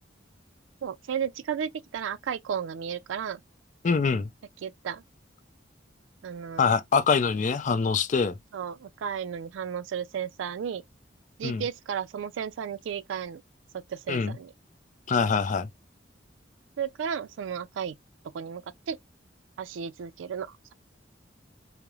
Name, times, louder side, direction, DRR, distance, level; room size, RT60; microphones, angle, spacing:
voice 1, 0.8-3.4 4.6-5.0 6.2-6.6 8.5-10.8 11.4-13.4 13.9-14.5 16.8-18.0 18.3-19.0 19.6-20.5, right 7 dB, 85° right, 0.3 m, -33 dB
voice 2, 3.8-4.3 6.6-8.4 11.4-11.6 14.1-14.4 15.1-15.7, left 5 dB, 40° left, 0.4 m, -24 dB
3.0 x 2.0 x 2.3 m
head